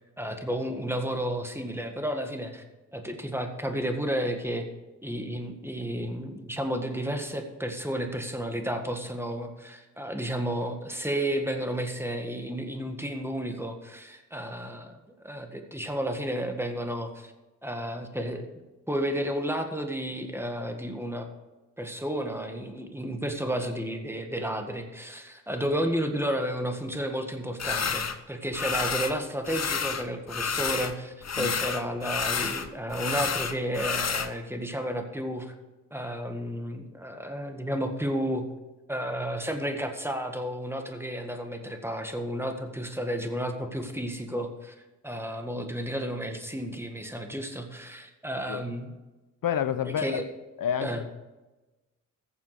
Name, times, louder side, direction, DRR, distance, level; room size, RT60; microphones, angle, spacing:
voice 1, 0.2-2.6 2.9-4.6 5.0-15.0 15.2-17.3 17.6-18.5 18.9-21.3 21.8-35.5 35.9-38.4 38.9-44.7 45.0-48.9 49.8-50.2 50.8-51.0, equal, 5° right, 5 dB, 1.7 m, -32 dB
sound 1, 27.6-28.2 28.5-29.2 29.4-30.9 31.2-34.3, left 6 dB, 50° left, 0.9 m, -30 dB
voice 2, 49.4-50.2 50.6-51.1, left 9 dB, 85° left, 12 dB, 0.7 m, -29 dB
14.5 x 7.1 x 4.9 m, 1.1 s
cardioid pair, 55°, 33 cm